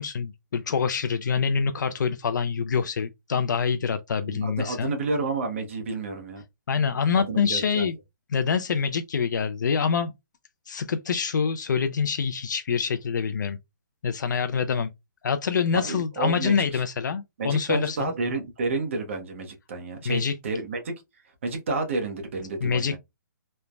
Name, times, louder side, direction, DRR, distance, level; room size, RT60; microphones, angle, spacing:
voice 1, 0.0-4.9 6.7-8.0 8.3-10.1 10.7-13.6 14.0-14.9 15.2-18.1 20.1-20.3 22.6-23.0, left 6 dB, 70° left, 0.3 m, -25 dB
voice 2, 4.2-6.4 7.1-7.9 15.7-16.8 17.4-20.9 21.4-23.0, right 3 dB, 40° right, 0.8 m, -30 dB
3.2 x 2.0 x 2.3 m
hypercardioid pair, 170°, 10 cm